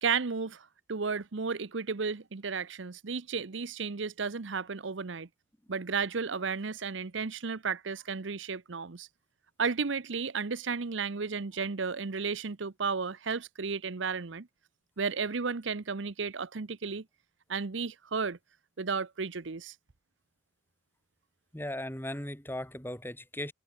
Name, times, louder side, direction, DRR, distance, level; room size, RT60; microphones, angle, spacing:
voice 1, 0.0-5.3 5.7-9.1 9.6-14.5 15.0-17.0 17.5-18.4 18.8-19.7, right 5 dB, 75° right, 0.8 m, -33 dB
voice 2, 21.5-23.5, left 1 dB, 10° left, 3.6 m, -37 dB
head